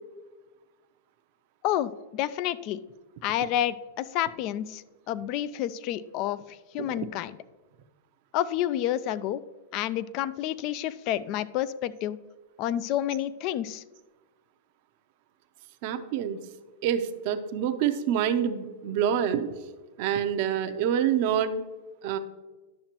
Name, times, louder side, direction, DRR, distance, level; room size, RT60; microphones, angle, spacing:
voice 1, 1.6-2.8 3.2-7.4 8.3-9.4 9.7-12.2 12.6-13.8, left 12 dB, 45° left, 17 dB, 0.4 m, -29 dB
voice 2, 15.8-16.4 16.8-19.5 20.0-21.6 22.0-22.2, right 9 dB, 55° right, 8 dB, 0.7 m, -27 dB
10.5 x 6.4 x 3.0 m, 1.2 s
hypercardioid pair, 125°, 0 cm